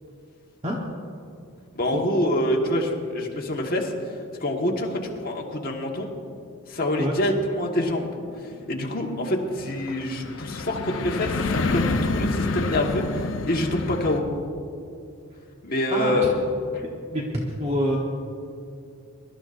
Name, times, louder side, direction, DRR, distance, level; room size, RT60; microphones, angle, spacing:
voice 1, 1.7-3.9 4.4-6.1 6.7-8.1 8.7-14.2 15.6-16.3, left 1 dB, 40° left, -1 dB, 1.6 m, -26 dB
sound 1, 8.2-14.2, left 3 dB, 60° left, 0.7 m, -28 dB
voice 2, 15.9-16.3 17.1-17.2 17.6-18.0, equal, 25° right, -2 dB, 1.2 m, -26 dB
23.5 x 12.5 x 2.6 m, 2.5 s
head